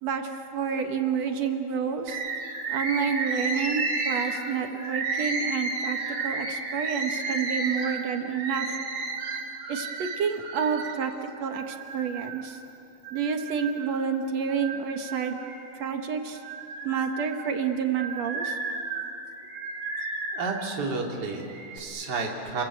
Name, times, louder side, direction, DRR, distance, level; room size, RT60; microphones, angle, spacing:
voice 1, 0.0-2.2 2.7-6.0 6.2-8.7 9.7-11.1 11.4-12.6 13.1-15.4 15.8-16.4 16.8-18.6, right 6 dB, 60° right, 6 dB, 2.3 m, -29 dB
Bird, 2.1-11.0 11.5-12.5 13.0-14.1 14.5-15.9 16.4-20.6 21.3-21.8, right 3 dB, 85° right, 4.6 m, -33 dB
voice 2, 20.3-22.6, right 4 dB, 30° right, 0 dB, 3.0 m, -31 dB
30.0 x 22.0 x 8.5 m, 2.8 s
omnidirectional pair, 3.9 m